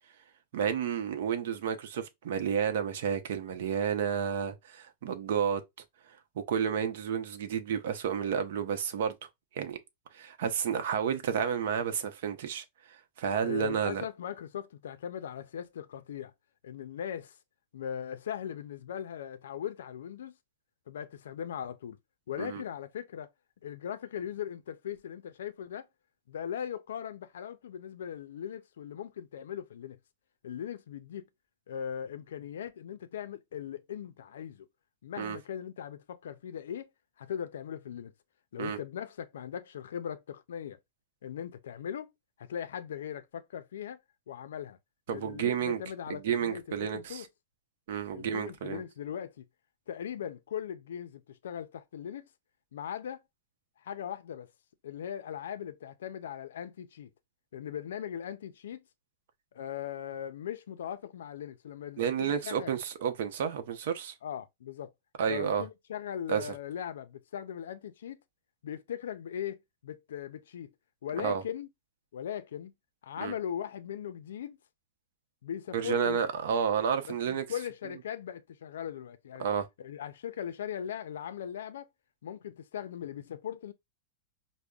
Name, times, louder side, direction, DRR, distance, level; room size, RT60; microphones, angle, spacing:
voice 1, 0.5-5.6 6.1-6.2 6.5-9.2 9.5-9.8 10.1-14.0 22.4-22.6 35.2-35.4 38.6-38.8 45.1-45.8 46.1-47.3 47.9-48.8 62.0-64.1 65.2-65.6 66.3-66.5 71.2-71.4 73.2-73.3 75.7-77.4 79.4-79.7, right 7 dB, 70° right, 0.7 m, -31 dB
voice 2, 13.4-16.3 16.6-17.4 17.7-20.3 20.9-22.0 22.3-23.3 23.6-25.9 26.3-30.0 30.4-31.2 31.7-34.7 35.0-36.9 37.2-38.1 38.5-40.8 41.2-42.1 42.4-44.0 44.3-44.8 45.1-47.3 48.1-49.4 49.9-52.3 52.7-53.2 53.8-54.5 54.8-57.1 57.5-58.8 59.5-62.7 64.2-64.9 65.3-68.2 68.6-69.6 69.8-70.7 71.0-71.7 72.1-72.7 73.0-74.6 75.4-76.2 77.1-79.5 79.8-81.9 82.2-83.7, left 9 dB, 85° left, 0.4 m, -39 dB
5.1 x 2.0 x 2.3 m
supercardioid pair, 145°, 0 cm